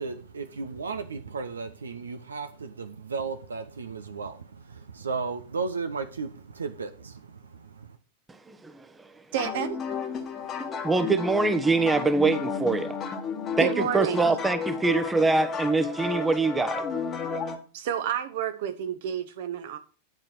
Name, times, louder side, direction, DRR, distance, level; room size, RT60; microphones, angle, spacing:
voice 1, 0.0-8.0, right 4 dB, 70° right, 0.8 m, -35 dB
voice 2, 8.5-8.9 10.6-13.0 13.6-16.8, right 3 dB, 10° right, 1.0 m, -24 dB
voice 3, 9.3-9.8 13.6-14.2 17.7-19.8, right 9 dB, 55° right, 1.2 m, -30 dB
sound 1, 9.4-17.6, left 5 dB, 25° left, 1.4 m, -32 dB
10.5 x 5.1 x 6.1 m
figure-of-eight pair, 90°, 0 cm